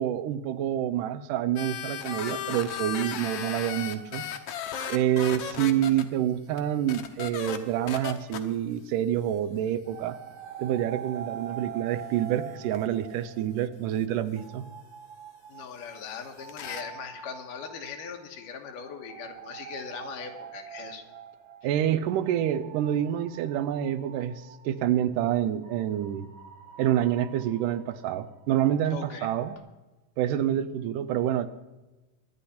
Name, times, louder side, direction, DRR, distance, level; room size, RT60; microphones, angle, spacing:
voice 1, 0.0-4.2 4.9-10.2 10.6-14.6 21.6-24.3 24.7-26.3 26.8-29.6 30.2-31.5, right 11 dB, 85° right, 12 dB, 2.4 m, -27 dB
sound 1, 1.6-6.0 6.6-6.7 6.9-7.6 7.9-8.4 12.7-12.8 16.5-16.8, left 8 dB, 65° left, 1.6 m, -35 dB
sound 2, 9.9-14.0 14.4-25.0 25.6-29.6, right 8 dB, 65° right, 1.5 m, -45 dB
voice 2, 15.5-21.0 28.9-29.3, left 6 dB, 85° left, 4 dB, 2.9 m, -40 dB
23.0 x 10.0 x 4.3 m, 1.1 s
omnidirectional pair, 3.6 m